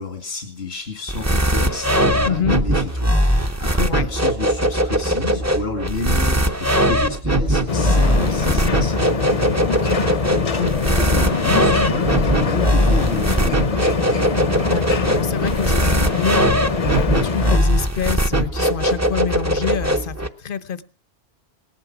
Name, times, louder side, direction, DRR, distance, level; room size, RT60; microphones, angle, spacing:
voice 1, 0.0-10.0 10.3-13.7, left 3 dB, 90° left, 2.5 m, -30 dB
sound 1, 1.1-20.3, equal, 15° right, 0.8 m, -20 dB
voice 2, 2.2-2.6 3.9-4.1 9.7-10.0 14.7-20.8, left 7 dB, 60° left, 1.1 m, -27 dB
sound 2, 7.7-17.6, left 5 dB, 35° left, 0.8 m, -23 dB
18.5 x 11.5 x 6.0 m
omnidirectional pair, 1.1 m